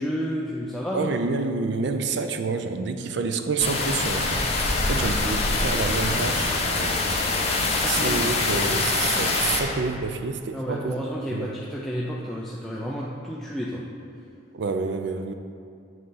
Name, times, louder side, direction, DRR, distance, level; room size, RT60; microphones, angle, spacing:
voice 1, 0.0-1.1 4.9-5.1 7.7-8.2 10.5-13.8, equal, ahead, -5 dB, 0.4 m, -31 dB
voice 2, 0.9-7.2 7.9-11.0 11.3-11.5 14.5-15.3, right 4 dB, 60° right, 8 dB, 0.4 m, -28 dB
sound 1, 3.6-9.6, left 3 dB, 30° left, 0.7 m, -24 dB
7.7 x 3.7 x 5.6 m, 2.4 s
head